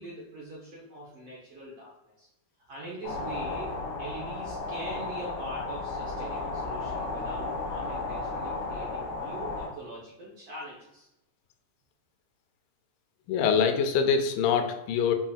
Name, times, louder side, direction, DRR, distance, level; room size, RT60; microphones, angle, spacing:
voice 1, 0.0-2.3 2.7-3.7 4.0-11.1, right 1 dB, 70° right, -5 dB, 1.5 m, -43 dB
sound 1, 3.0-9.7, left 3 dB, 70° left, 2.4 m, -34 dB
voice 2, 13.3-15.1, left 6 dB, 90° left, 6 dB, 2.2 m, -24 dB
6.9 x 2.8 x 2.3 m, 0.89 s
omnidirectional pair, 3.9 m